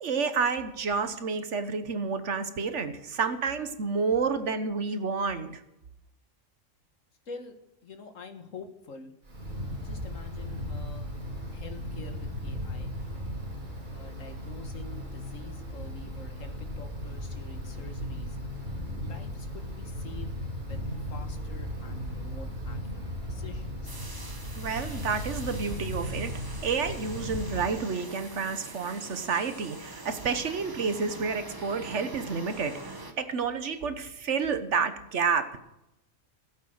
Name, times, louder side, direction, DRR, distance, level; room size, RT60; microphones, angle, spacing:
voice 1, 0.0-5.6 24.6-35.6, right 5 dB, 60° right, 10 dB, 1.4 m, -30 dB
voice 2, 7.3-7.6 7.8-9.1 9.8-11.1 11.5-12.9 13.9-18.4 19.0-20.8 21.1-23.9, left 4 dB, 75° left, 6 dB, 1.9 m, -47 dB
Wind, 9.2-27.6, equal, 35° right, 2.6 m, -36 dB
sound 1, 23.8-33.1, right 2 dB, 15° right, 1.2 m, -44 dB
16.5 x 8.3 x 6.4 m, 0.87 s
omnidirectional pair, 1.4 m